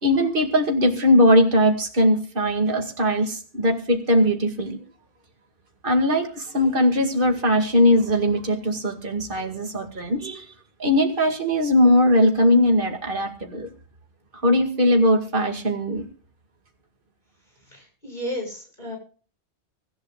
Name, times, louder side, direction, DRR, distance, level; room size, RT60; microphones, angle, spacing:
voice 1, 0.0-4.8 5.8-10.5 10.8-13.7 14.4-16.0, left 1 dB, 45° right, 4 dB, 2.5 m, -20 dB
voice 2, 17.7-19.0, equal, 40° left, 0 dB, 7.0 m, -33 dB
24.5 x 12.0 x 2.4 m, 0.41 s
omnidirectional pair, 1.3 m